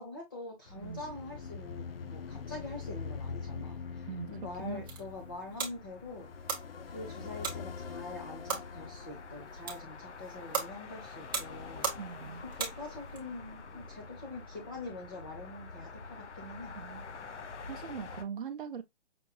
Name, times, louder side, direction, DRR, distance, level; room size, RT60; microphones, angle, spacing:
voice 1, 0.0-6.3 6.9-11.9 12.5-16.7, left 2 dB, 20° left, 0.9 m, -45 dB
sound 1, 0.7-18.2, left 4 dB, 80° left, 1.1 m, -49 dB
sound 2, 0.8-10.4 11.1-13.1, left 5 dB, 55° left, 0.6 m, -45 dB
sound 3, 4.6-13.2, right 5 dB, 20° right, 0.8 m, -40 dB
voice 2, 12.0-12.4 16.7-17.1 17.7-18.8, right 7 dB, 50° right, 0.6 m, -41 dB
5.9 x 3.4 x 2.3 m
hypercardioid pair, 175°, 35 cm